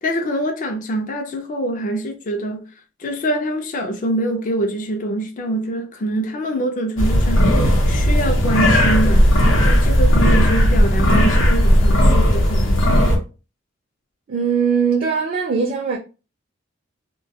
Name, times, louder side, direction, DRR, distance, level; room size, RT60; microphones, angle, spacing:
voice 1, 0.0-2.6 3.0-9.3 9.6-13.2, right 1 dB, 45° left, 0.4 m, -25 dB
sound 1, 7.0-13.2, equal, 85° left, 0.7 m, -15 dB
voice 2, 14.3-16.0, right 6 dB, 50° right, 0.4 m, -20 dB
2.2 x 2.2 x 2.7 m
head